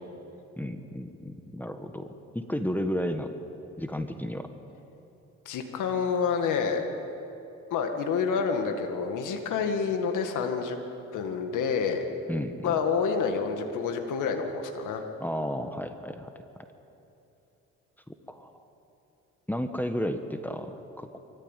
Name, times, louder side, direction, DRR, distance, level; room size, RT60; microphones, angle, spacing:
voice 1, 0.6-3.3 3.8-4.5 12.3-12.7 15.2-16.3 18.3-18.5 19.5-21.2, equal, 5° left, 7 dB, 1.3 m, -33 dB
voice 2, 5.5-6.8 7.7-10.8 11.1-12.1 12.6-15.1, left 6 dB, 85° left, 4 dB, 2.0 m, -28 dB
24.0 x 15.0 x 9.2 m, 2.9 s
cardioid pair, 90°, 30 cm